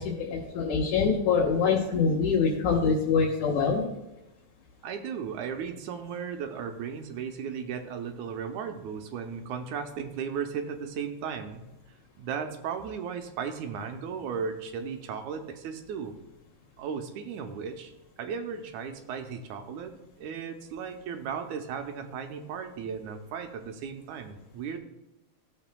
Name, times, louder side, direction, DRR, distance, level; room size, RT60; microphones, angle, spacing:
voice 1, 0.0-3.9, left 5 dB, 80° left, -4 dB, 2.7 m, -25 dB
voice 2, 4.8-11.6 12.2-16.2 16.8-17.9 18.2-24.8, right 6 dB, 80° right, 6 dB, 2.1 m, -36 dB
16.0 x 7.0 x 2.3 m, 0.94 s
omnidirectional pair, 3.4 m